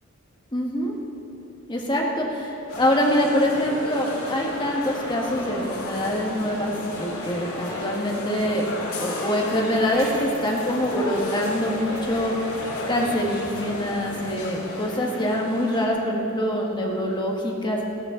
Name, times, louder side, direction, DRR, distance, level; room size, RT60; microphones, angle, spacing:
voice 1, 0.5-0.9 1.7-8.7 8.9-12.4 12.9-17.8, equal, 20° left, -1 dB, 1.6 m, -25 dB
sound 1, 2.7-15.9, left 1 dB, 75° left, 2.6 m, -33 dB
15.5 x 13.5 x 3.8 m, 3.0 s
head